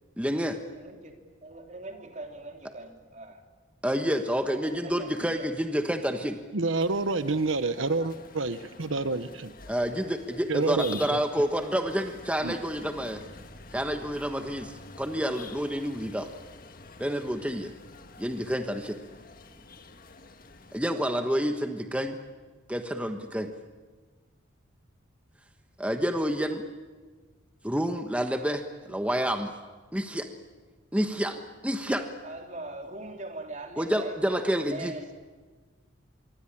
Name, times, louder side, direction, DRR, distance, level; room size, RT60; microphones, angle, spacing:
voice 1, 0.2-0.6 3.8-6.4 9.7-13.2 13.7-16.3 17.0-17.7 18.2-19.0 20.7-22.2 22.7-23.5 25.8-26.6 27.6-29.5 29.9-30.3 30.9-32.1 33.8-34.9, equal, 5° right, 5 dB, 1.3 m, -29 dB
voice 2, 0.8-1.1 1.4-3.4 4.6-5.5 32.2-35.0, right 2 dB, 35° right, 3 dB, 3.2 m, -41 dB
voice 3, 6.5-9.5 10.5-11.2 12.4-12.5, right 3 dB, 85° right, 12 dB, 1.0 m, -28 dB
sound 1, 6.7-20.8, left 3 dB, 45° left, 1.8 m, -48 dB
25.0 x 24.0 x 10.0 m, 1.4 s
head